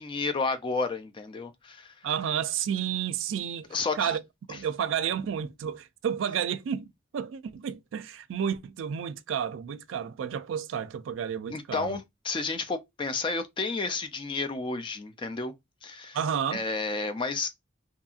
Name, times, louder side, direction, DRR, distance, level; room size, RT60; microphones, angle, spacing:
voice 1, 0.0-1.9 3.7-4.2 4.5-4.6 11.5-15.5 15.8-16.2 16.5-17.5, left 3 dB, 25° left, 0.4 m, -31 dB
voice 2, 2.0-3.7 4.0-4.2 4.5-12.0 16.1-16.6, right 8 dB, 75° right, 0.3 m, -31 dB
2.7 x 2.6 x 2.4 m
head